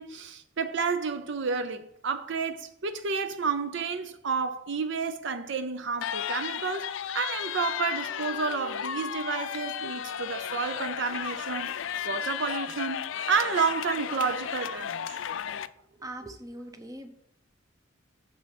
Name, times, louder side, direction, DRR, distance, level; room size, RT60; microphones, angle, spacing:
voice 1, 0.0-11.7 12.0-15.2, right 5 dB, 65° right, 0.6 m, -30 dB
sound 1, 6.0-15.7, left 9 dB, 70° left, 0.4 m, -34 dB
voice 2, 16.0-17.1, right 1 dB, 20° right, 0.9 m, -41 dB
7.0 x 6.1 x 6.0 m
head